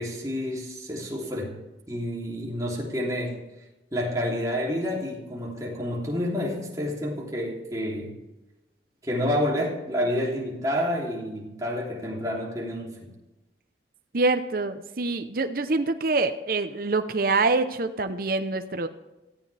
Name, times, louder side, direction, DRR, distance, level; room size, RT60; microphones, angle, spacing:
voice 1, 0.0-1.5 1.9-3.4 3.9-8.1 9.0-13.1, equal, 20° right, -3 dB, 3.1 m, -29 dB
voice 2, 14.1-18.9, right 3 dB, 50° right, 8 dB, 0.8 m, -25 dB
17.5 x 14.5 x 3.4 m, 1.0 s
head